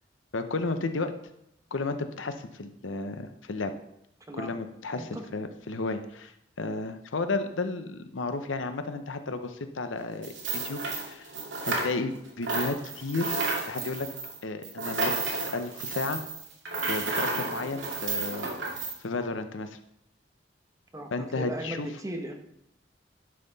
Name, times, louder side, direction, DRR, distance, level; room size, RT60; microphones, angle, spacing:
voice 1, 0.3-1.1 1.7-3.7 4.3-11.3 11.6-14.1 14.4-15.1 15.4-16.2 16.9-18.5 19.0-19.8 21.1-21.9, left 3 dB, 90° left, 9 dB, 0.8 m, -33 dB
sound 1, 10.2-12.2 12.4-18.9, right 3 dB, 70° right, 2.1 m, -32 dB
voice 2, 20.9-22.4, right 1 dB, 15° right, 3 dB, 1.1 m, -37 dB
11.0 x 5.8 x 4.0 m, 0.77 s
head